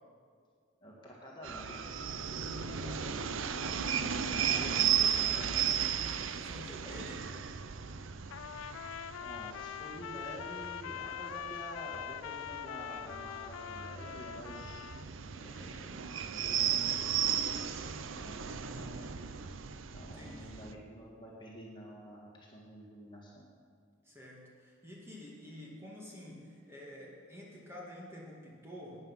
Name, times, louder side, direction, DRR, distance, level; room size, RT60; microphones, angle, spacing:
voice 1, 0.8-3.8 4.4-5.5 9.2-14.9 15.3-15.9 16.3-17.6 18.1-19.1 19.9-23.5, equal, 25° left, -3 dB, 1.9 m, -49 dB
sound 1, 1.4-20.7, right 8 dB, 80° right, 0.6 m, -35 dB
voice 2, 4.5-7.3 20.0-20.7 24.0-29.1, left 1 dB, 15° right, -4 dB, 2.1 m, -49 dB
Trumpet, 8.3-15.1, left 10 dB, 90° left, 0.3 m, -43 dB
12.5 x 9.4 x 5.6 m, 2.1 s
head